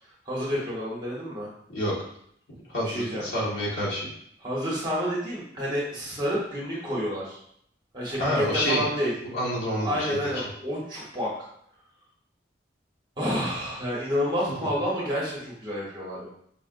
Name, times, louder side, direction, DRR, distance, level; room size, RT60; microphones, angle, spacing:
voice 1, 0.3-1.5 2.8-3.3 4.4-7.4 7.9-9.1 9.8-11.3 13.2-16.3, equal, 25° right, -6 dB, 1.0 m, -29 dB
voice 2, 2.7-4.1 8.2-8.9 9.3-10.3, equal, 75° left, -6 dB, 1.3 m, -28 dB
5.1 x 2.4 x 2.5 m, 0.70 s
head